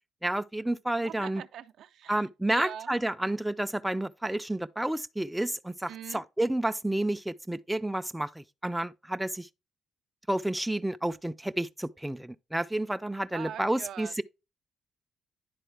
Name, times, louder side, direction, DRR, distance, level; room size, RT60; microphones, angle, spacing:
voice 1, 0.2-1.4 2.1-9.5 10.3-14.2, right 1 dB, 5° right, 0.3 m, -30 dB
voice 2, 1.0-2.3 2.5-2.9 5.9-6.2 13.3-14.2, right 10 dB, 75° right, 0.4 m, -42 dB
10.0 x 4.0 x 3.3 m
cardioid pair, 90°, 0 cm